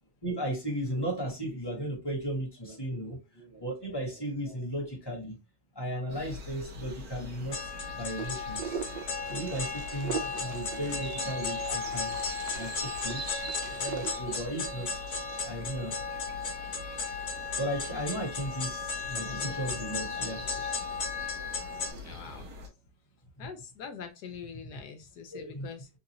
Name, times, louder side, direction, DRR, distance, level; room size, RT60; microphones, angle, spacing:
voice 1, 0.2-5.4 5.7-8.8 9.2-12.1 12.5-13.2 13.7-15.0 15.4-16.0 17.6-21.0 21.4-22.1 25.3-25.7, right 1 dB, 15° left, 1.0 m, -36 dB
sound 1, 6.1-22.7, left 1 dB, 60° right, 1.4 m, -44 dB
sound 2, 7.5-21.9, left 5 dB, 50° left, 1.1 m, -35 dB
Wind, 8.2-14.2, right 7 dB, 80° right, 1.2 m, -41 dB
voice 2, 17.9-18.2 22.0-22.5 23.4-25.9, left 6 dB, 70° left, 1.1 m, -44 dB
3.7 x 2.5 x 2.9 m
omnidirectional pair, 1.9 m